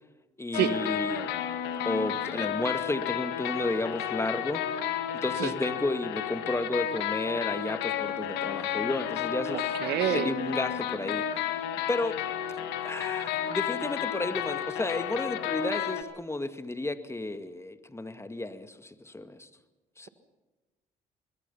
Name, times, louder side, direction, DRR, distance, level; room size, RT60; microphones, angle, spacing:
voice 1, 0.4-1.3 1.9-4.6 5.1-9.8 10.1-11.6 11.9-12.2 12.8-19.5 20.0-20.1, left 2 dB, 15° left, 10 dB, 2.1 m, -32 dB
sound 1, 0.5-16.0, left 10 dB, 80° left, 1.8 m, -32 dB
voice 2, 9.8-10.3, right 11 dB, 75° right, 12 dB, 1.5 m, -26 dB
25.0 x 21.0 x 5.7 m, 1.1 s
supercardioid pair, 60°, 17 cm